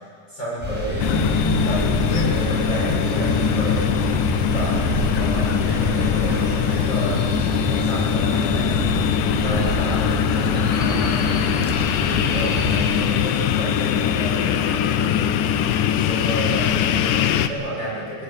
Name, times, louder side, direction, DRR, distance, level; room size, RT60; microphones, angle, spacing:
voice 1, 0.3-7.2 7.7-8.7 9.4-11.2 12.0-15.7 16.0-18.2, right 1 dB, 30° left, -7 dB, 7.5 m, -30 dB
sound 1, 0.6-13.0, right 1 dB, 5° right, 5.7 m, -27 dB
sound 2, 1.0-17.5, left 9 dB, 75° left, 2.2 m, -22 dB
20.5 x 17.0 x 8.8 m, 2.3 s
omnidirectional pair, 4.0 m